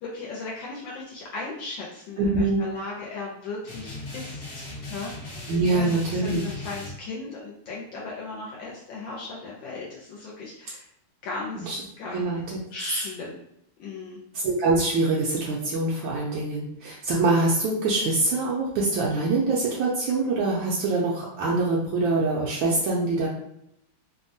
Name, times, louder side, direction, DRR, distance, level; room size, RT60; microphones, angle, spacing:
voice 1, 0.0-10.9 11.2-12.3 12.7-13.3 13.8-14.2, left 3 dB, 75° left, -4 dB, 1.2 m, -37 dB
voice 2, 2.2-2.6 5.5-6.4 11.6-11.8 12.1-12.6 14.4-23.3, right 3 dB, 75° right, -4 dB, 1.3 m, -24 dB
sound 1, 3.7-6.9, left 2 dB, 55° left, 0.7 m, -38 dB
3.4 x 2.1 x 2.6 m, 0.76 s
omnidirectional pair, 2.2 m